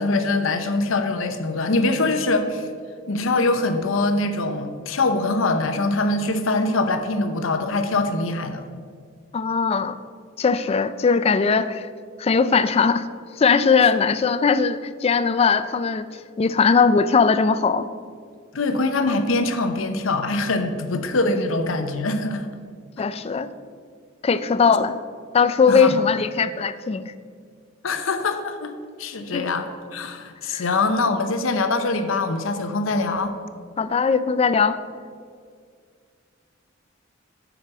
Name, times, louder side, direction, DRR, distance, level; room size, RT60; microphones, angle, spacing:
voice 1, 0.0-2.7 3.1-8.6 18.5-22.5 25.7-26.0 27.8-28.7 29.0-33.4, left 2 dB, 75° left, 8 dB, 0.7 m, -23 dB
voice 2, 9.3-9.9 10.4-11.9 12.2-13.1 13.4-16.1 16.4-17.9 23.0-23.5 24.2-25.0 25.3-27.0 29.3-29.4 30.5-30.6 33.8-34.8, left 5 dB, 30° left, 13 dB, 0.3 m, -19 dB
8.7 x 5.0 x 6.0 m, 2.1 s
head